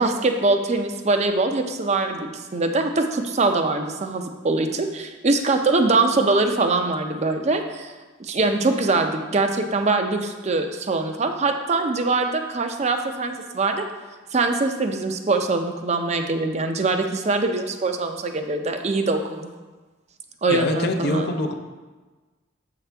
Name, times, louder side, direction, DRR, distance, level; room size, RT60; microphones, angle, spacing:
voice 1, 0.0-7.9 8.2-13.8 14.3-19.5 20.4-21.3, right 3 dB, 35° right, 5 dB, 0.5 m, -23 dB
voice 2, 20.5-21.5, left 2 dB, 55° left, 4 dB, 0.6 m, -24 dB
7.5 x 5.8 x 3.4 m, 1.3 s
head